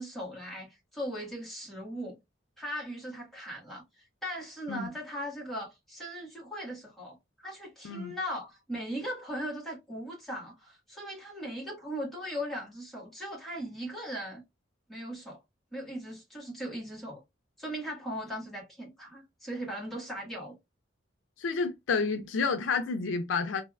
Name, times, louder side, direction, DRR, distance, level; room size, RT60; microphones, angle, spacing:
voice 1, 0.0-2.2 2.6-3.8 4.2-14.4 14.9-15.4 15.7-17.2 17.6-20.5, equal, ahead, 1.6 m, -38 dB
voice 2, 21.4-23.6, left 4 dB, 85° left, 0.4 m, -30 dB
3.3 x 2.7 x 2.3 m
head